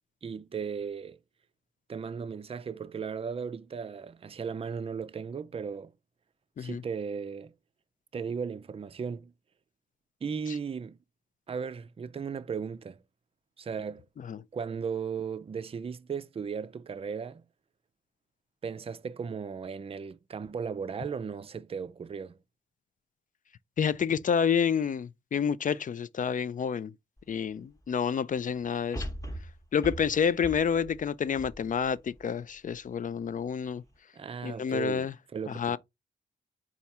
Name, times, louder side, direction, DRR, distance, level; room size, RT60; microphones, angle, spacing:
voice 1, 0.2-1.2 1.9-5.9 6.6-7.5 8.1-9.3 10.2-11.0 11.5-13.0 13.6-14.1 14.5-17.4 18.6-22.4 34.1-35.1 35.3-35.8, right 6 dB, 30° right, 0.4 m, -36 dB
voice 2, 23.8-26.9 27.3-29.1 29.7-33.8 34.4-35.1 35.5-35.8, left 7 dB, 45° left, 0.4 m, -29 dB
sound 1, 27.2-27.3 28.9-32.3 32.8-32.9, equal, 15° left, 0.9 m, -40 dB
4.2 x 2.4 x 4.1 m
supercardioid pair, 45°, 19 cm